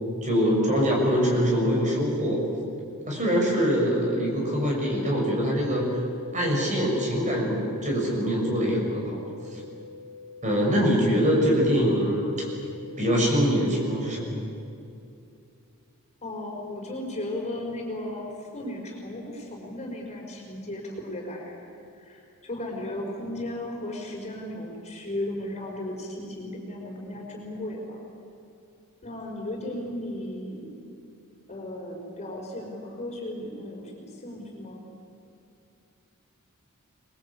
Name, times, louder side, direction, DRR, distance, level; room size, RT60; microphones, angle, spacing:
voice 1, 0.2-2.4 3.1-6.0 6.3-9.2 9.5-9.6 10.4-12.5 13.0-14.4, equal, 35° right, -1 dB, 6.3 m, -24 dB
sound 1, 3.7-13.7, left 4 dB, 10° left, 2.5 m, -45 dB
voice 2, 16.2-21.6 21.9-28.0 29.0-30.8 31.5-34.9, left 1 dB, 30° left, 0 dB, 4.9 m, -35 dB
26.0 x 21.0 x 8.5 m, 2.5 s
head